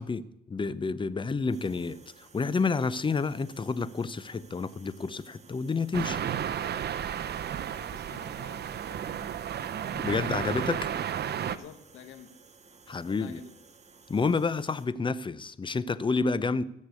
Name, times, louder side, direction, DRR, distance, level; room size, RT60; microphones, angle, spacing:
voice 1, 0.0-2.0 2.3-6.2 9.9-10.8 12.9-13.4 14.1-16.6, left 4 dB, 25° left, 0.7 m, -29 dB
sound 1, 1.5-14.9, right 5 dB, 35° right, 1.4 m, -56 dB
sound 2, 5.9-11.6, right 9 dB, 55° right, 0.7 m, -33 dB
voice 2, 7.7-9.4 10.2-10.6 11.4-12.3 13.0-13.5, left 9 dB, 85° left, 1.6 m, -49 dB
15.0 x 6.6 x 8.2 m
cardioid pair, 90°, 20 cm